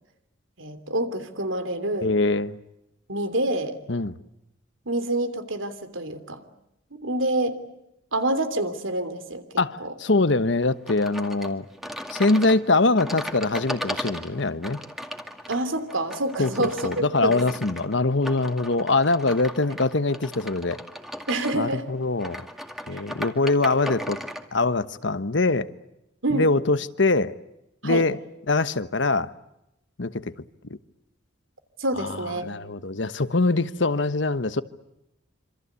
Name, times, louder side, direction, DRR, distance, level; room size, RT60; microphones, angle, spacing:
voice 1, 0.6-2.1 3.1-3.8 4.8-6.4 6.9-7.6 8.1-9.4 9.8-9.9 15.5-17.4 21.3-21.9 22.9-23.0 26.2-26.4 27.8-28.1 31.8-32.5, right 1 dB, 85° right, 3.1 m, -27 dB
voice 2, 2.0-2.6 3.9-4.1 9.6-11.6 12.1-14.8 16.4-20.8 21.5-22.4 22.9-24.2 24.5-25.7 26.3-27.3 27.8-28.2 28.5-29.3 30.0-30.3 30.7-30.8 32.0-32.1 32.4-34.6, left 3 dB, 65° left, 1.2 m, -23 dB
sound 1, 10.9-24.5, equal, ahead, 2.1 m, -37 dB
27.0 x 26.0 x 8.3 m
head